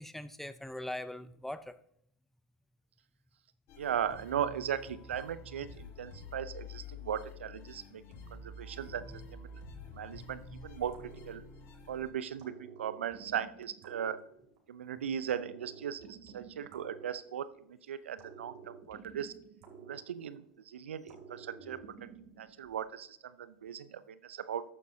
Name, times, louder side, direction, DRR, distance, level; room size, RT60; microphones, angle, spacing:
voice 1, 0.0-1.7 10.1-10.7, left 1 dB, 5° left, 14 dB, 0.6 m, -42 dB
sound 1, 3.7-12.1, left 4 dB, 40° left, 2.0 m, -49 dB
voice 2, 3.8-8.0 8.3-9.6 9.9-10.9 11.3-11.4 11.9-14.2 14.7-19.3 19.8-21.8 22.4-24.6, right 9 dB, 75° right, 14 dB, 0.6 m, -38 dB
sound 2, 10.9-11.9 12.4-14.8 15.3-17.7 18.2-20.6 21.1-22.6, right 6 dB, 50° right, 2.8 m, -51 dB
14.0 x 9.4 x 2.8 m, 0.68 s
hypercardioid pair, 90°, 6 cm